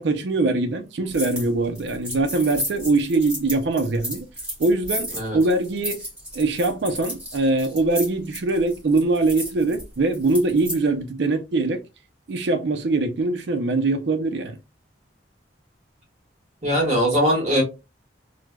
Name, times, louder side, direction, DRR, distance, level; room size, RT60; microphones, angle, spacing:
voice 1, 0.0-4.3 4.6-6.0 6.3-11.8 12.3-14.6, right 2 dB, 70° right, 0.5 m, -22 dB
sound 1, 1.1-1.5 1.8-10.8, equal, 5° right, 1.6 m, -33 dB
voice 2, 16.6-17.6, equal, 40° right, 1.3 m, -20 dB
3.2 x 2.1 x 2.2 m
head